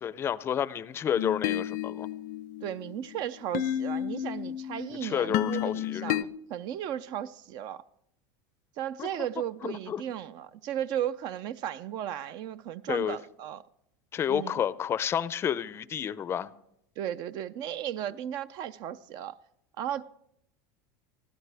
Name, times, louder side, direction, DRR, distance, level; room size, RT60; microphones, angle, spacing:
voice 1, 0.0-2.1 5.0-6.3 9.0-9.1 9.6-10.0 12.9-13.2 14.1-16.5, left 9 dB, 25° left, 0.5 m, -30 dB
sound 1, 1.2-6.2, left 11 dB, 70° left, 0.7 m, -32 dB
voice 2, 2.6-6.2 6.5-7.8 8.8-13.6 14.3-14.6 17.0-19.4 19.8-20.0, right 10 dB, 45° right, 0.5 m, -35 dB
24.5 x 15.5 x 3.4 m
supercardioid pair, 145°, 10 cm